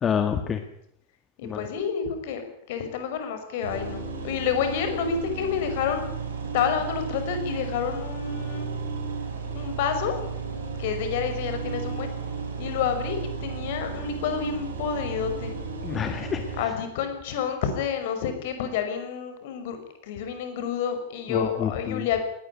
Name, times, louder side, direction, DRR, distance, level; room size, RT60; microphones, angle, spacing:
voice 1, 0.0-0.6 1.4-1.7 15.8-16.4 21.3-22.1, left 7 dB, 25° left, 8 dB, 1.7 m, -27 dB
voice 2, 1.4-2.4 2.7-6.0 6.5-8.7 9.5-10.2 10.8-12.1 12.6-15.5 16.6-19.8 20.0-22.2, left 7 dB, 50° left, 7 dB, 5.9 m, -29 dB
sound 1, 3.6-16.6, right 5 dB, 70° right, 6.4 m, -34 dB
20.0 x 18.5 x 9.8 m, 0.77 s
figure-of-eight pair, 90°, 0 cm